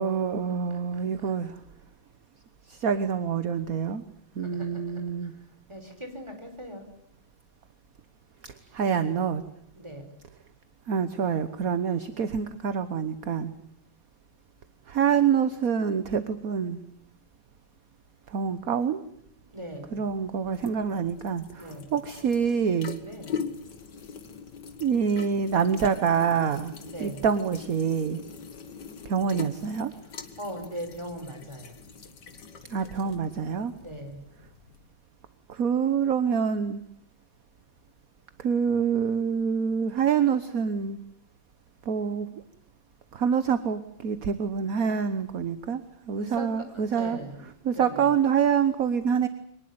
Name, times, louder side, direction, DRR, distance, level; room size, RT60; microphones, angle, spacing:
voice 1, 0.0-1.6 2.7-4.0 4.4-5.3 8.4-9.4 10.9-13.5 14.9-16.8 18.3-19.0 19.9-23.0 24.8-26.7 27.0-28.2 29.0-29.9 32.7-33.7 35.5-36.8 38.4-41.0 41.8-42.3 43.1-45.8 46.1-47.2 47.6-49.3, right 7 dB, 50° right, 11 dB, 1.4 m, -26 dB
voice 2, 4.4-5.4 5.7-6.9 8.6-8.8 9.7-10.1 19.5-20.0 21.6-21.9 23.0-23.4 26.6-27.2 29.9-31.7 33.7-34.2 46.1-48.1, equal, 10° right, 5 dB, 5.0 m, -40 dB
sound 1, 19.9-35.0, left 6 dB, 55° left, 2.3 m, -42 dB
23.5 x 20.0 x 9.6 m, 0.70 s
omnidirectional pair, 2.3 m